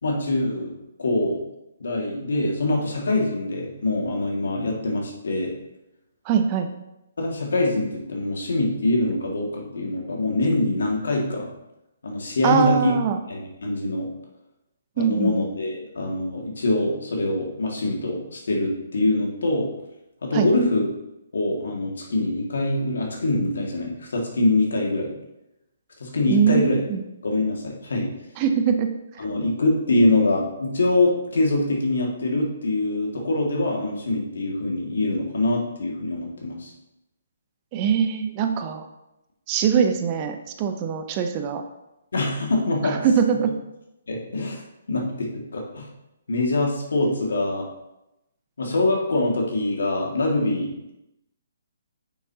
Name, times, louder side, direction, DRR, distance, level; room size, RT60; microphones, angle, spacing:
voice 1, 0.0-1.4 1.8-5.5 7.2-11.5 12.0-12.9 13.3-14.1 15.0-19.7 20.2-20.8 21.3-25.1 26.0-26.8 27.2-28.1 29.2-36.7 42.1-43.0 44.1-44.6 44.9-45.9 46.3-47.7 48.6-50.7, left 2 dB, 75° left, 0 dB, 1.9 m, -24 dB
voice 2, 6.3-6.7 12.4-13.2 15.0-15.4 20.3-20.5 26.3-27.0 28.4-28.9 37.7-38.8 39.5-41.6 42.8-43.5, right 7 dB, 30° right, 6 dB, 0.7 m, -22 dB
8.8 x 6.1 x 2.8 m, 0.91 s
hypercardioid pair, 145°, 0 cm